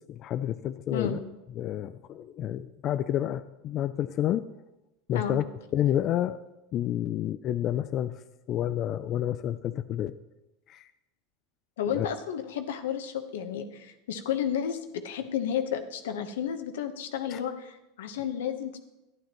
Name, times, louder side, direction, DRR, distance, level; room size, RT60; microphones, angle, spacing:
voice 1, 0.1-1.3 1.6-4.5 5.1-5.4 5.7-6.4 6.7-8.2 8.5-10.2 10.7-10.9 11.9-12.1 17.3-17.4, left 11 dB, 40° left, 11 dB, 0.3 m, -29 dB
voice 2, 11.8-18.8, left 8 dB, 85° left, 7 dB, 1.0 m, -32 dB
11.5 x 11.0 x 3.0 m, 0.97 s
supercardioid pair, 125°, 0 cm